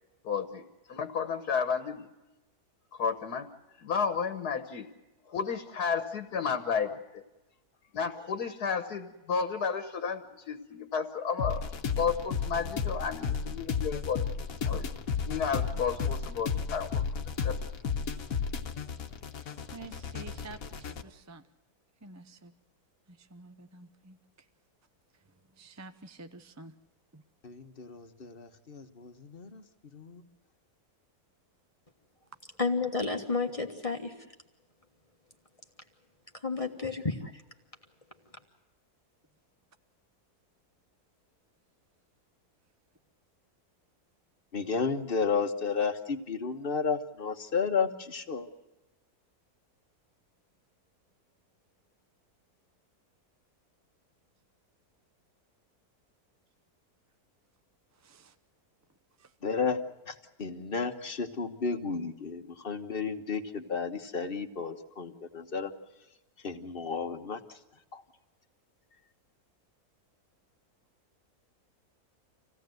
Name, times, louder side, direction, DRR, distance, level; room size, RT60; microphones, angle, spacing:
voice 1, 0.2-0.6 0.9-2.1 2.9-3.5 3.8-4.9 5.3-7.2 7.9-11.7 11.9-14.2 14.7-14.9 15.3-17.0 17.4-17.6, left 6 dB, 85° left, 8 dB, 1.8 m, -32 dB
sound 1, 11.4-21.0, left 6 dB, 65° left, 1.5 m, -33 dB
voice 2, 19.4-21.5 22.0-22.5 23.1-24.5 25.3-26.7 27.1-27.2 57.9-58.4 59.2-59.3, right 3 dB, 15° right, 8 dB, 0.6 m, -50 dB
voice 3, 27.4-29.6 29.9-30.2 44.5-48.5 59.4-59.8 60.1-60.2 60.4-65.7 66.4-67.4 67.9-68.0, left 5 dB, 40° left, 7 dB, 1.4 m, -32 dB
voice 4, 32.6-34.1 36.4-37.4, left 4 dB, 25° left, 3 dB, 1.5 m, -31 dB
26.5 x 17.0 x 7.8 m, 1.1 s
omnidirectional pair, 1.6 m